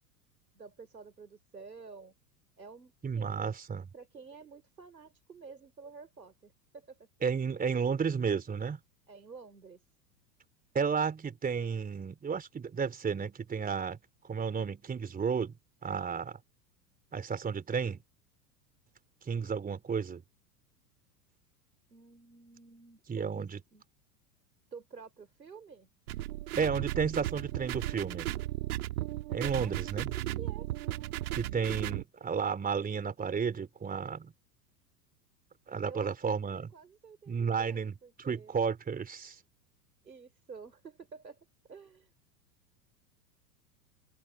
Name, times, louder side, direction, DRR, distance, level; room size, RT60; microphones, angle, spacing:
voice 1, 0.5-2.1 2.6-3.5 3.9-7.0 9.1-9.8 21.9-23.8 24.7-25.9 29.4-29.7 30.1-31.2 35.9-38.6 40.0-42.1, right 5 dB, 85° right, 4.3 m, -50 dB
voice 2, 3.0-3.8 7.2-8.8 10.7-14.0 14.2-15.6 15.8-16.4 17.1-18.0 19.2-20.2 23.1-23.6 26.6-28.3 29.3-30.1 31.4-34.3 35.7-36.7 37.3-39.4, right 6 dB, 15° right, 3.6 m, -32 dB
sound 1, 26.1-32.0, right 15 dB, 60° right, 2.1 m, -35 dB
figure-of-eight pair, 90°, 49 cm